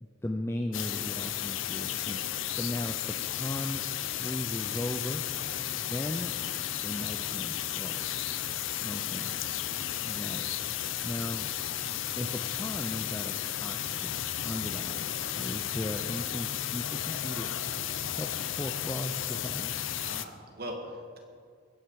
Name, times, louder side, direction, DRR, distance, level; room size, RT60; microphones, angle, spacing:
voice 1, 0.0-2.2 2.6-5.2 5.8-6.5 6.8-8.0 8.8-9.3 10.0-10.5 11.0-11.5 12.2-17.7 18.2-19.7, left 1 dB, 10° left, 3 dB, 0.5 m, -37 dB
sound 1, 0.7-20.3, left 11 dB, 85° left, 0.6 m, -34 dB
voice 2, 5.3-5.6 9.7-10.0 20.0-21.2, equal, 50° right, 2 dB, 2.0 m, -42 dB
sound 2, 11.2-14.2 15.3-15.4, left 5 dB, 30° left, 1.5 m, -54 dB
21.5 x 9.5 x 4.8 m, 2.1 s
head